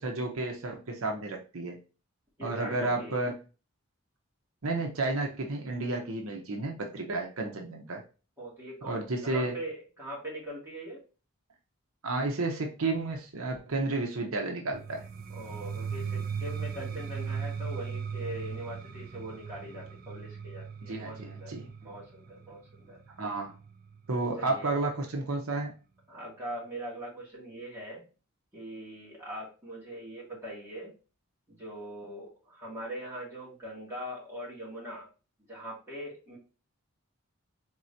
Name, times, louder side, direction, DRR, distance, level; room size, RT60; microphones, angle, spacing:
voice 1, 0.0-1.8 2.4-3.3 4.6-8.0 8.9-9.6 12.0-15.0 20.9-21.7 23.2-23.5 24.1-25.7, right 2 dB, 75° right, 2 dB, 0.8 m, -32 dB
voice 2, 2.4-3.2 8.4-11.0 15.3-21.5 21.8-23.0 24.4-24.7 26.1-28.0 28.5-30.9 31.5-35.1 35.5-36.4, equal, 10° right, -7 dB, 2.3 m, -41 dB
sound 1, 14.7-24.5, right 6 dB, 40° right, 0.4 m, -38 dB
4.7 x 3.6 x 2.7 m, 0.33 s
head